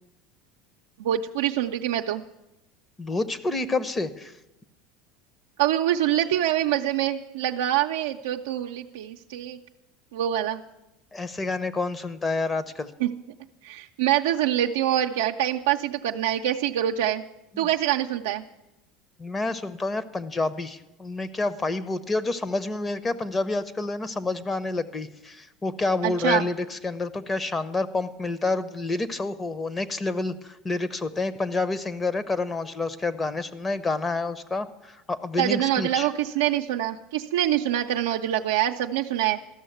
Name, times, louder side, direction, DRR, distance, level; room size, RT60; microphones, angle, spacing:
voice 1, 1.0-2.2 5.6-9.6 10.1-10.6 13.0-13.1 13.6-17.2 17.6-18.4 26.0-26.5 35.4-39.4, right 12 dB, 85° right, 2 dB, 0.5 m, -25 dB
voice 2, 3.0-4.3 11.1-12.9 17.5-17.7 19.2-36.1, left 3 dB, 20° left, 14 dB, 0.8 m, -28 dB
13.5 x 6.3 x 9.1 m, 0.94 s
supercardioid pair, 105°, 0 cm